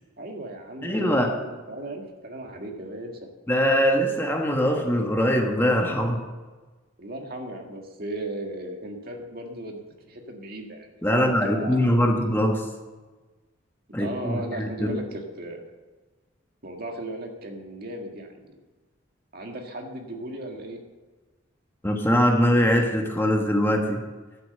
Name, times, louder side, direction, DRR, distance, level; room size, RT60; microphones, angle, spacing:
voice 1, 0.2-3.3 7.0-11.8 13.9-15.7 16.6-18.6 19.3-20.8, right 1 dB, 50° right, 2 dB, 1.8 m, -36 dB
voice 2, 0.8-1.3 3.5-6.2 11.0-12.6 13.9-14.9 21.8-24.0, equal, 10° left, 2 dB, 1.3 m, -22 dB
11.5 x 8.6 x 6.7 m, 1.3 s
head